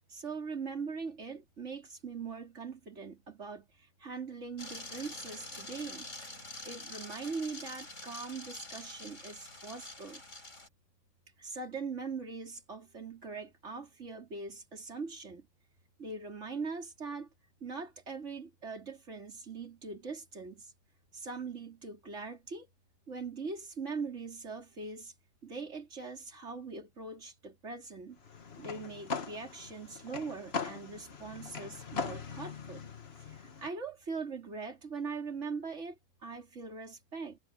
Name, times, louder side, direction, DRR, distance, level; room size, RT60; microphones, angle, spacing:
voice 1, 0.1-6.1 6.6-10.2 11.4-15.5 16.0-17.3 17.6-20.7 21.1-22.7 23.1-25.1 25.4-28.2 28.6-32.8 33.2-37.4, right 4 dB, 70° right, 3.8 m, -41 dB
sound 1, 4.6-10.7, left 2 dB, 80° left, 7.6 m, -46 dB
sound 2, 28.2-33.7, left 5 dB, 55° left, 1.6 m, -41 dB
omnidirectional pair, 1.3 m